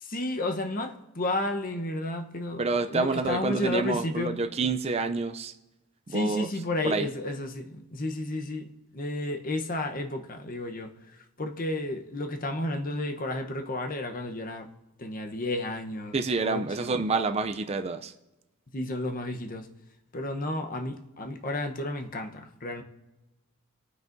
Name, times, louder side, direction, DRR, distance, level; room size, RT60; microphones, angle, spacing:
voice 1, 0.0-4.4 6.1-10.9 11.4-14.7 15.0-17.0 18.7-19.7 20.1-22.8, left 1 dB, 40° left, 4 dB, 1.0 m, -32 dB
voice 2, 2.6-5.5 6.1-6.5 6.8-7.1 16.1-18.1, right 3 dB, 30° right, 7 dB, 0.4 m, -28 dB
24.5 x 9.3 x 2.7 m, 1.0 s
head